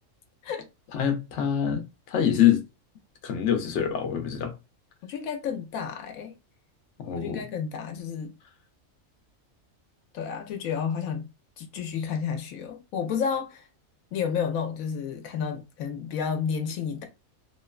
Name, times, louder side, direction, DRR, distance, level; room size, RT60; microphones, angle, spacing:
voice 1, 0.9-2.6 3.2-4.5 7.0-7.4, left 9 dB, 65° left, 0.9 m, -25 dB
voice 2, 5.0-6.3 7.1-8.3 10.1-11.2 11.6-13.7 14.1-17.0, left 7 dB, 80° left, 1.0 m, -31 dB
2.9 x 2.1 x 2.2 m
omnidirectional pair, 1.4 m